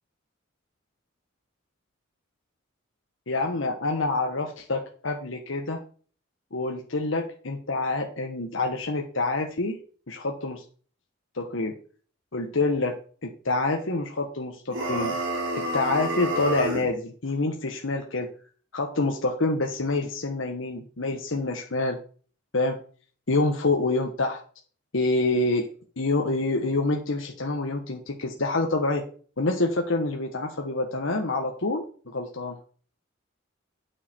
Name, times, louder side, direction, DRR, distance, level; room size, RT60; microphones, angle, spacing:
voice 1, 3.3-5.8 6.5-9.8 10.1-10.6 11.3-11.7 12.3-15.1 15.6-18.3 18.7-22.0 22.5-22.8 23.3-24.4 24.9-25.7 26.0-29.1 29.4-31.9 32.1-32.6, left 2 dB, 85° left, 2 dB, 1.3 m, -27 dB
sound 1, 14.7-16.9, right 1 dB, 85° right, 3.6 m, -28 dB
9.0 x 6.7 x 4.5 m, 0.42 s
head